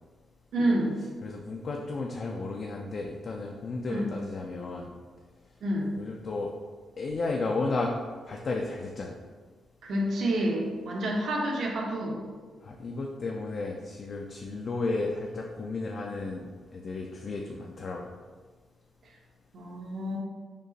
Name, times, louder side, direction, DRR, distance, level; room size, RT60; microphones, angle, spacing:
voice 1, 0.5-1.0 3.9-4.1 5.6-5.9 9.8-12.2 19.0-19.1 19.5-20.2, right 1 dB, 60° right, -1 dB, 0.8 m, -28 dB
voice 2, 1.2-4.9 6.0-6.5 7.0-7.9 8.3-9.1 12.6-18.0, left 3 dB, 40° left, 0 dB, 0.4 m, -33 dB
5.2 x 2.4 x 3.9 m, 1.5 s
wide cardioid pair, 155°, 0 cm